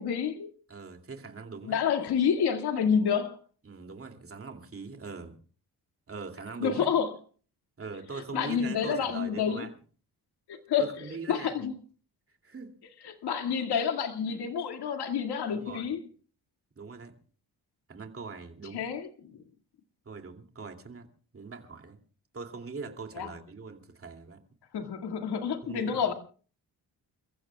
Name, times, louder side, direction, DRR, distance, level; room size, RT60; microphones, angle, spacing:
voice 1, 0.0-0.5 1.6-3.4 6.6-7.1 8.3-9.7 10.5-11.7 13.0-16.0 18.7-19.4 23.2-23.3 24.7-26.1, left 7 dB, 80° left, 2.2 m, -29 dB
voice 2, 0.7-1.8 3.6-5.4 6.1-6.9 7.8-9.8 10.8-11.7 12.4-12.8 15.5-15.9 16.8-17.1 17.9-18.9 20.1-21.1 21.3-22.0 22.3-24.4 25.6-26.0, right 4 dB, 35° right, 2.7 m, -42 dB
29.5 x 15.0 x 2.3 m
cardioid pair, 90°, 39 cm